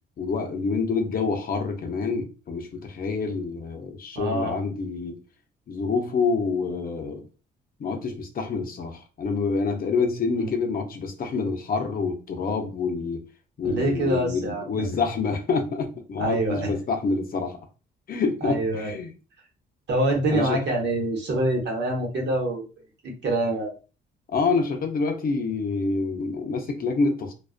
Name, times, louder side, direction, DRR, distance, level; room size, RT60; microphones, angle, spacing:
voice 1, 0.2-5.2 5.7-7.3 7.8-13.2 13.6-17.6 18.1-19.1 20.3-20.6 24.3-27.3, left 4 dB, 45° left, 0.6 m, -27 dB
voice 2, 4.1-4.6 10.4-10.5 13.6-14.9 16.2-16.7 18.4-19.0 19.9-22.7 23.0-23.7, right 1 dB, 65° right, 1.0 m, -25 dB
2.3 x 2.2 x 2.4 m
cardioid pair, 90°, 20 cm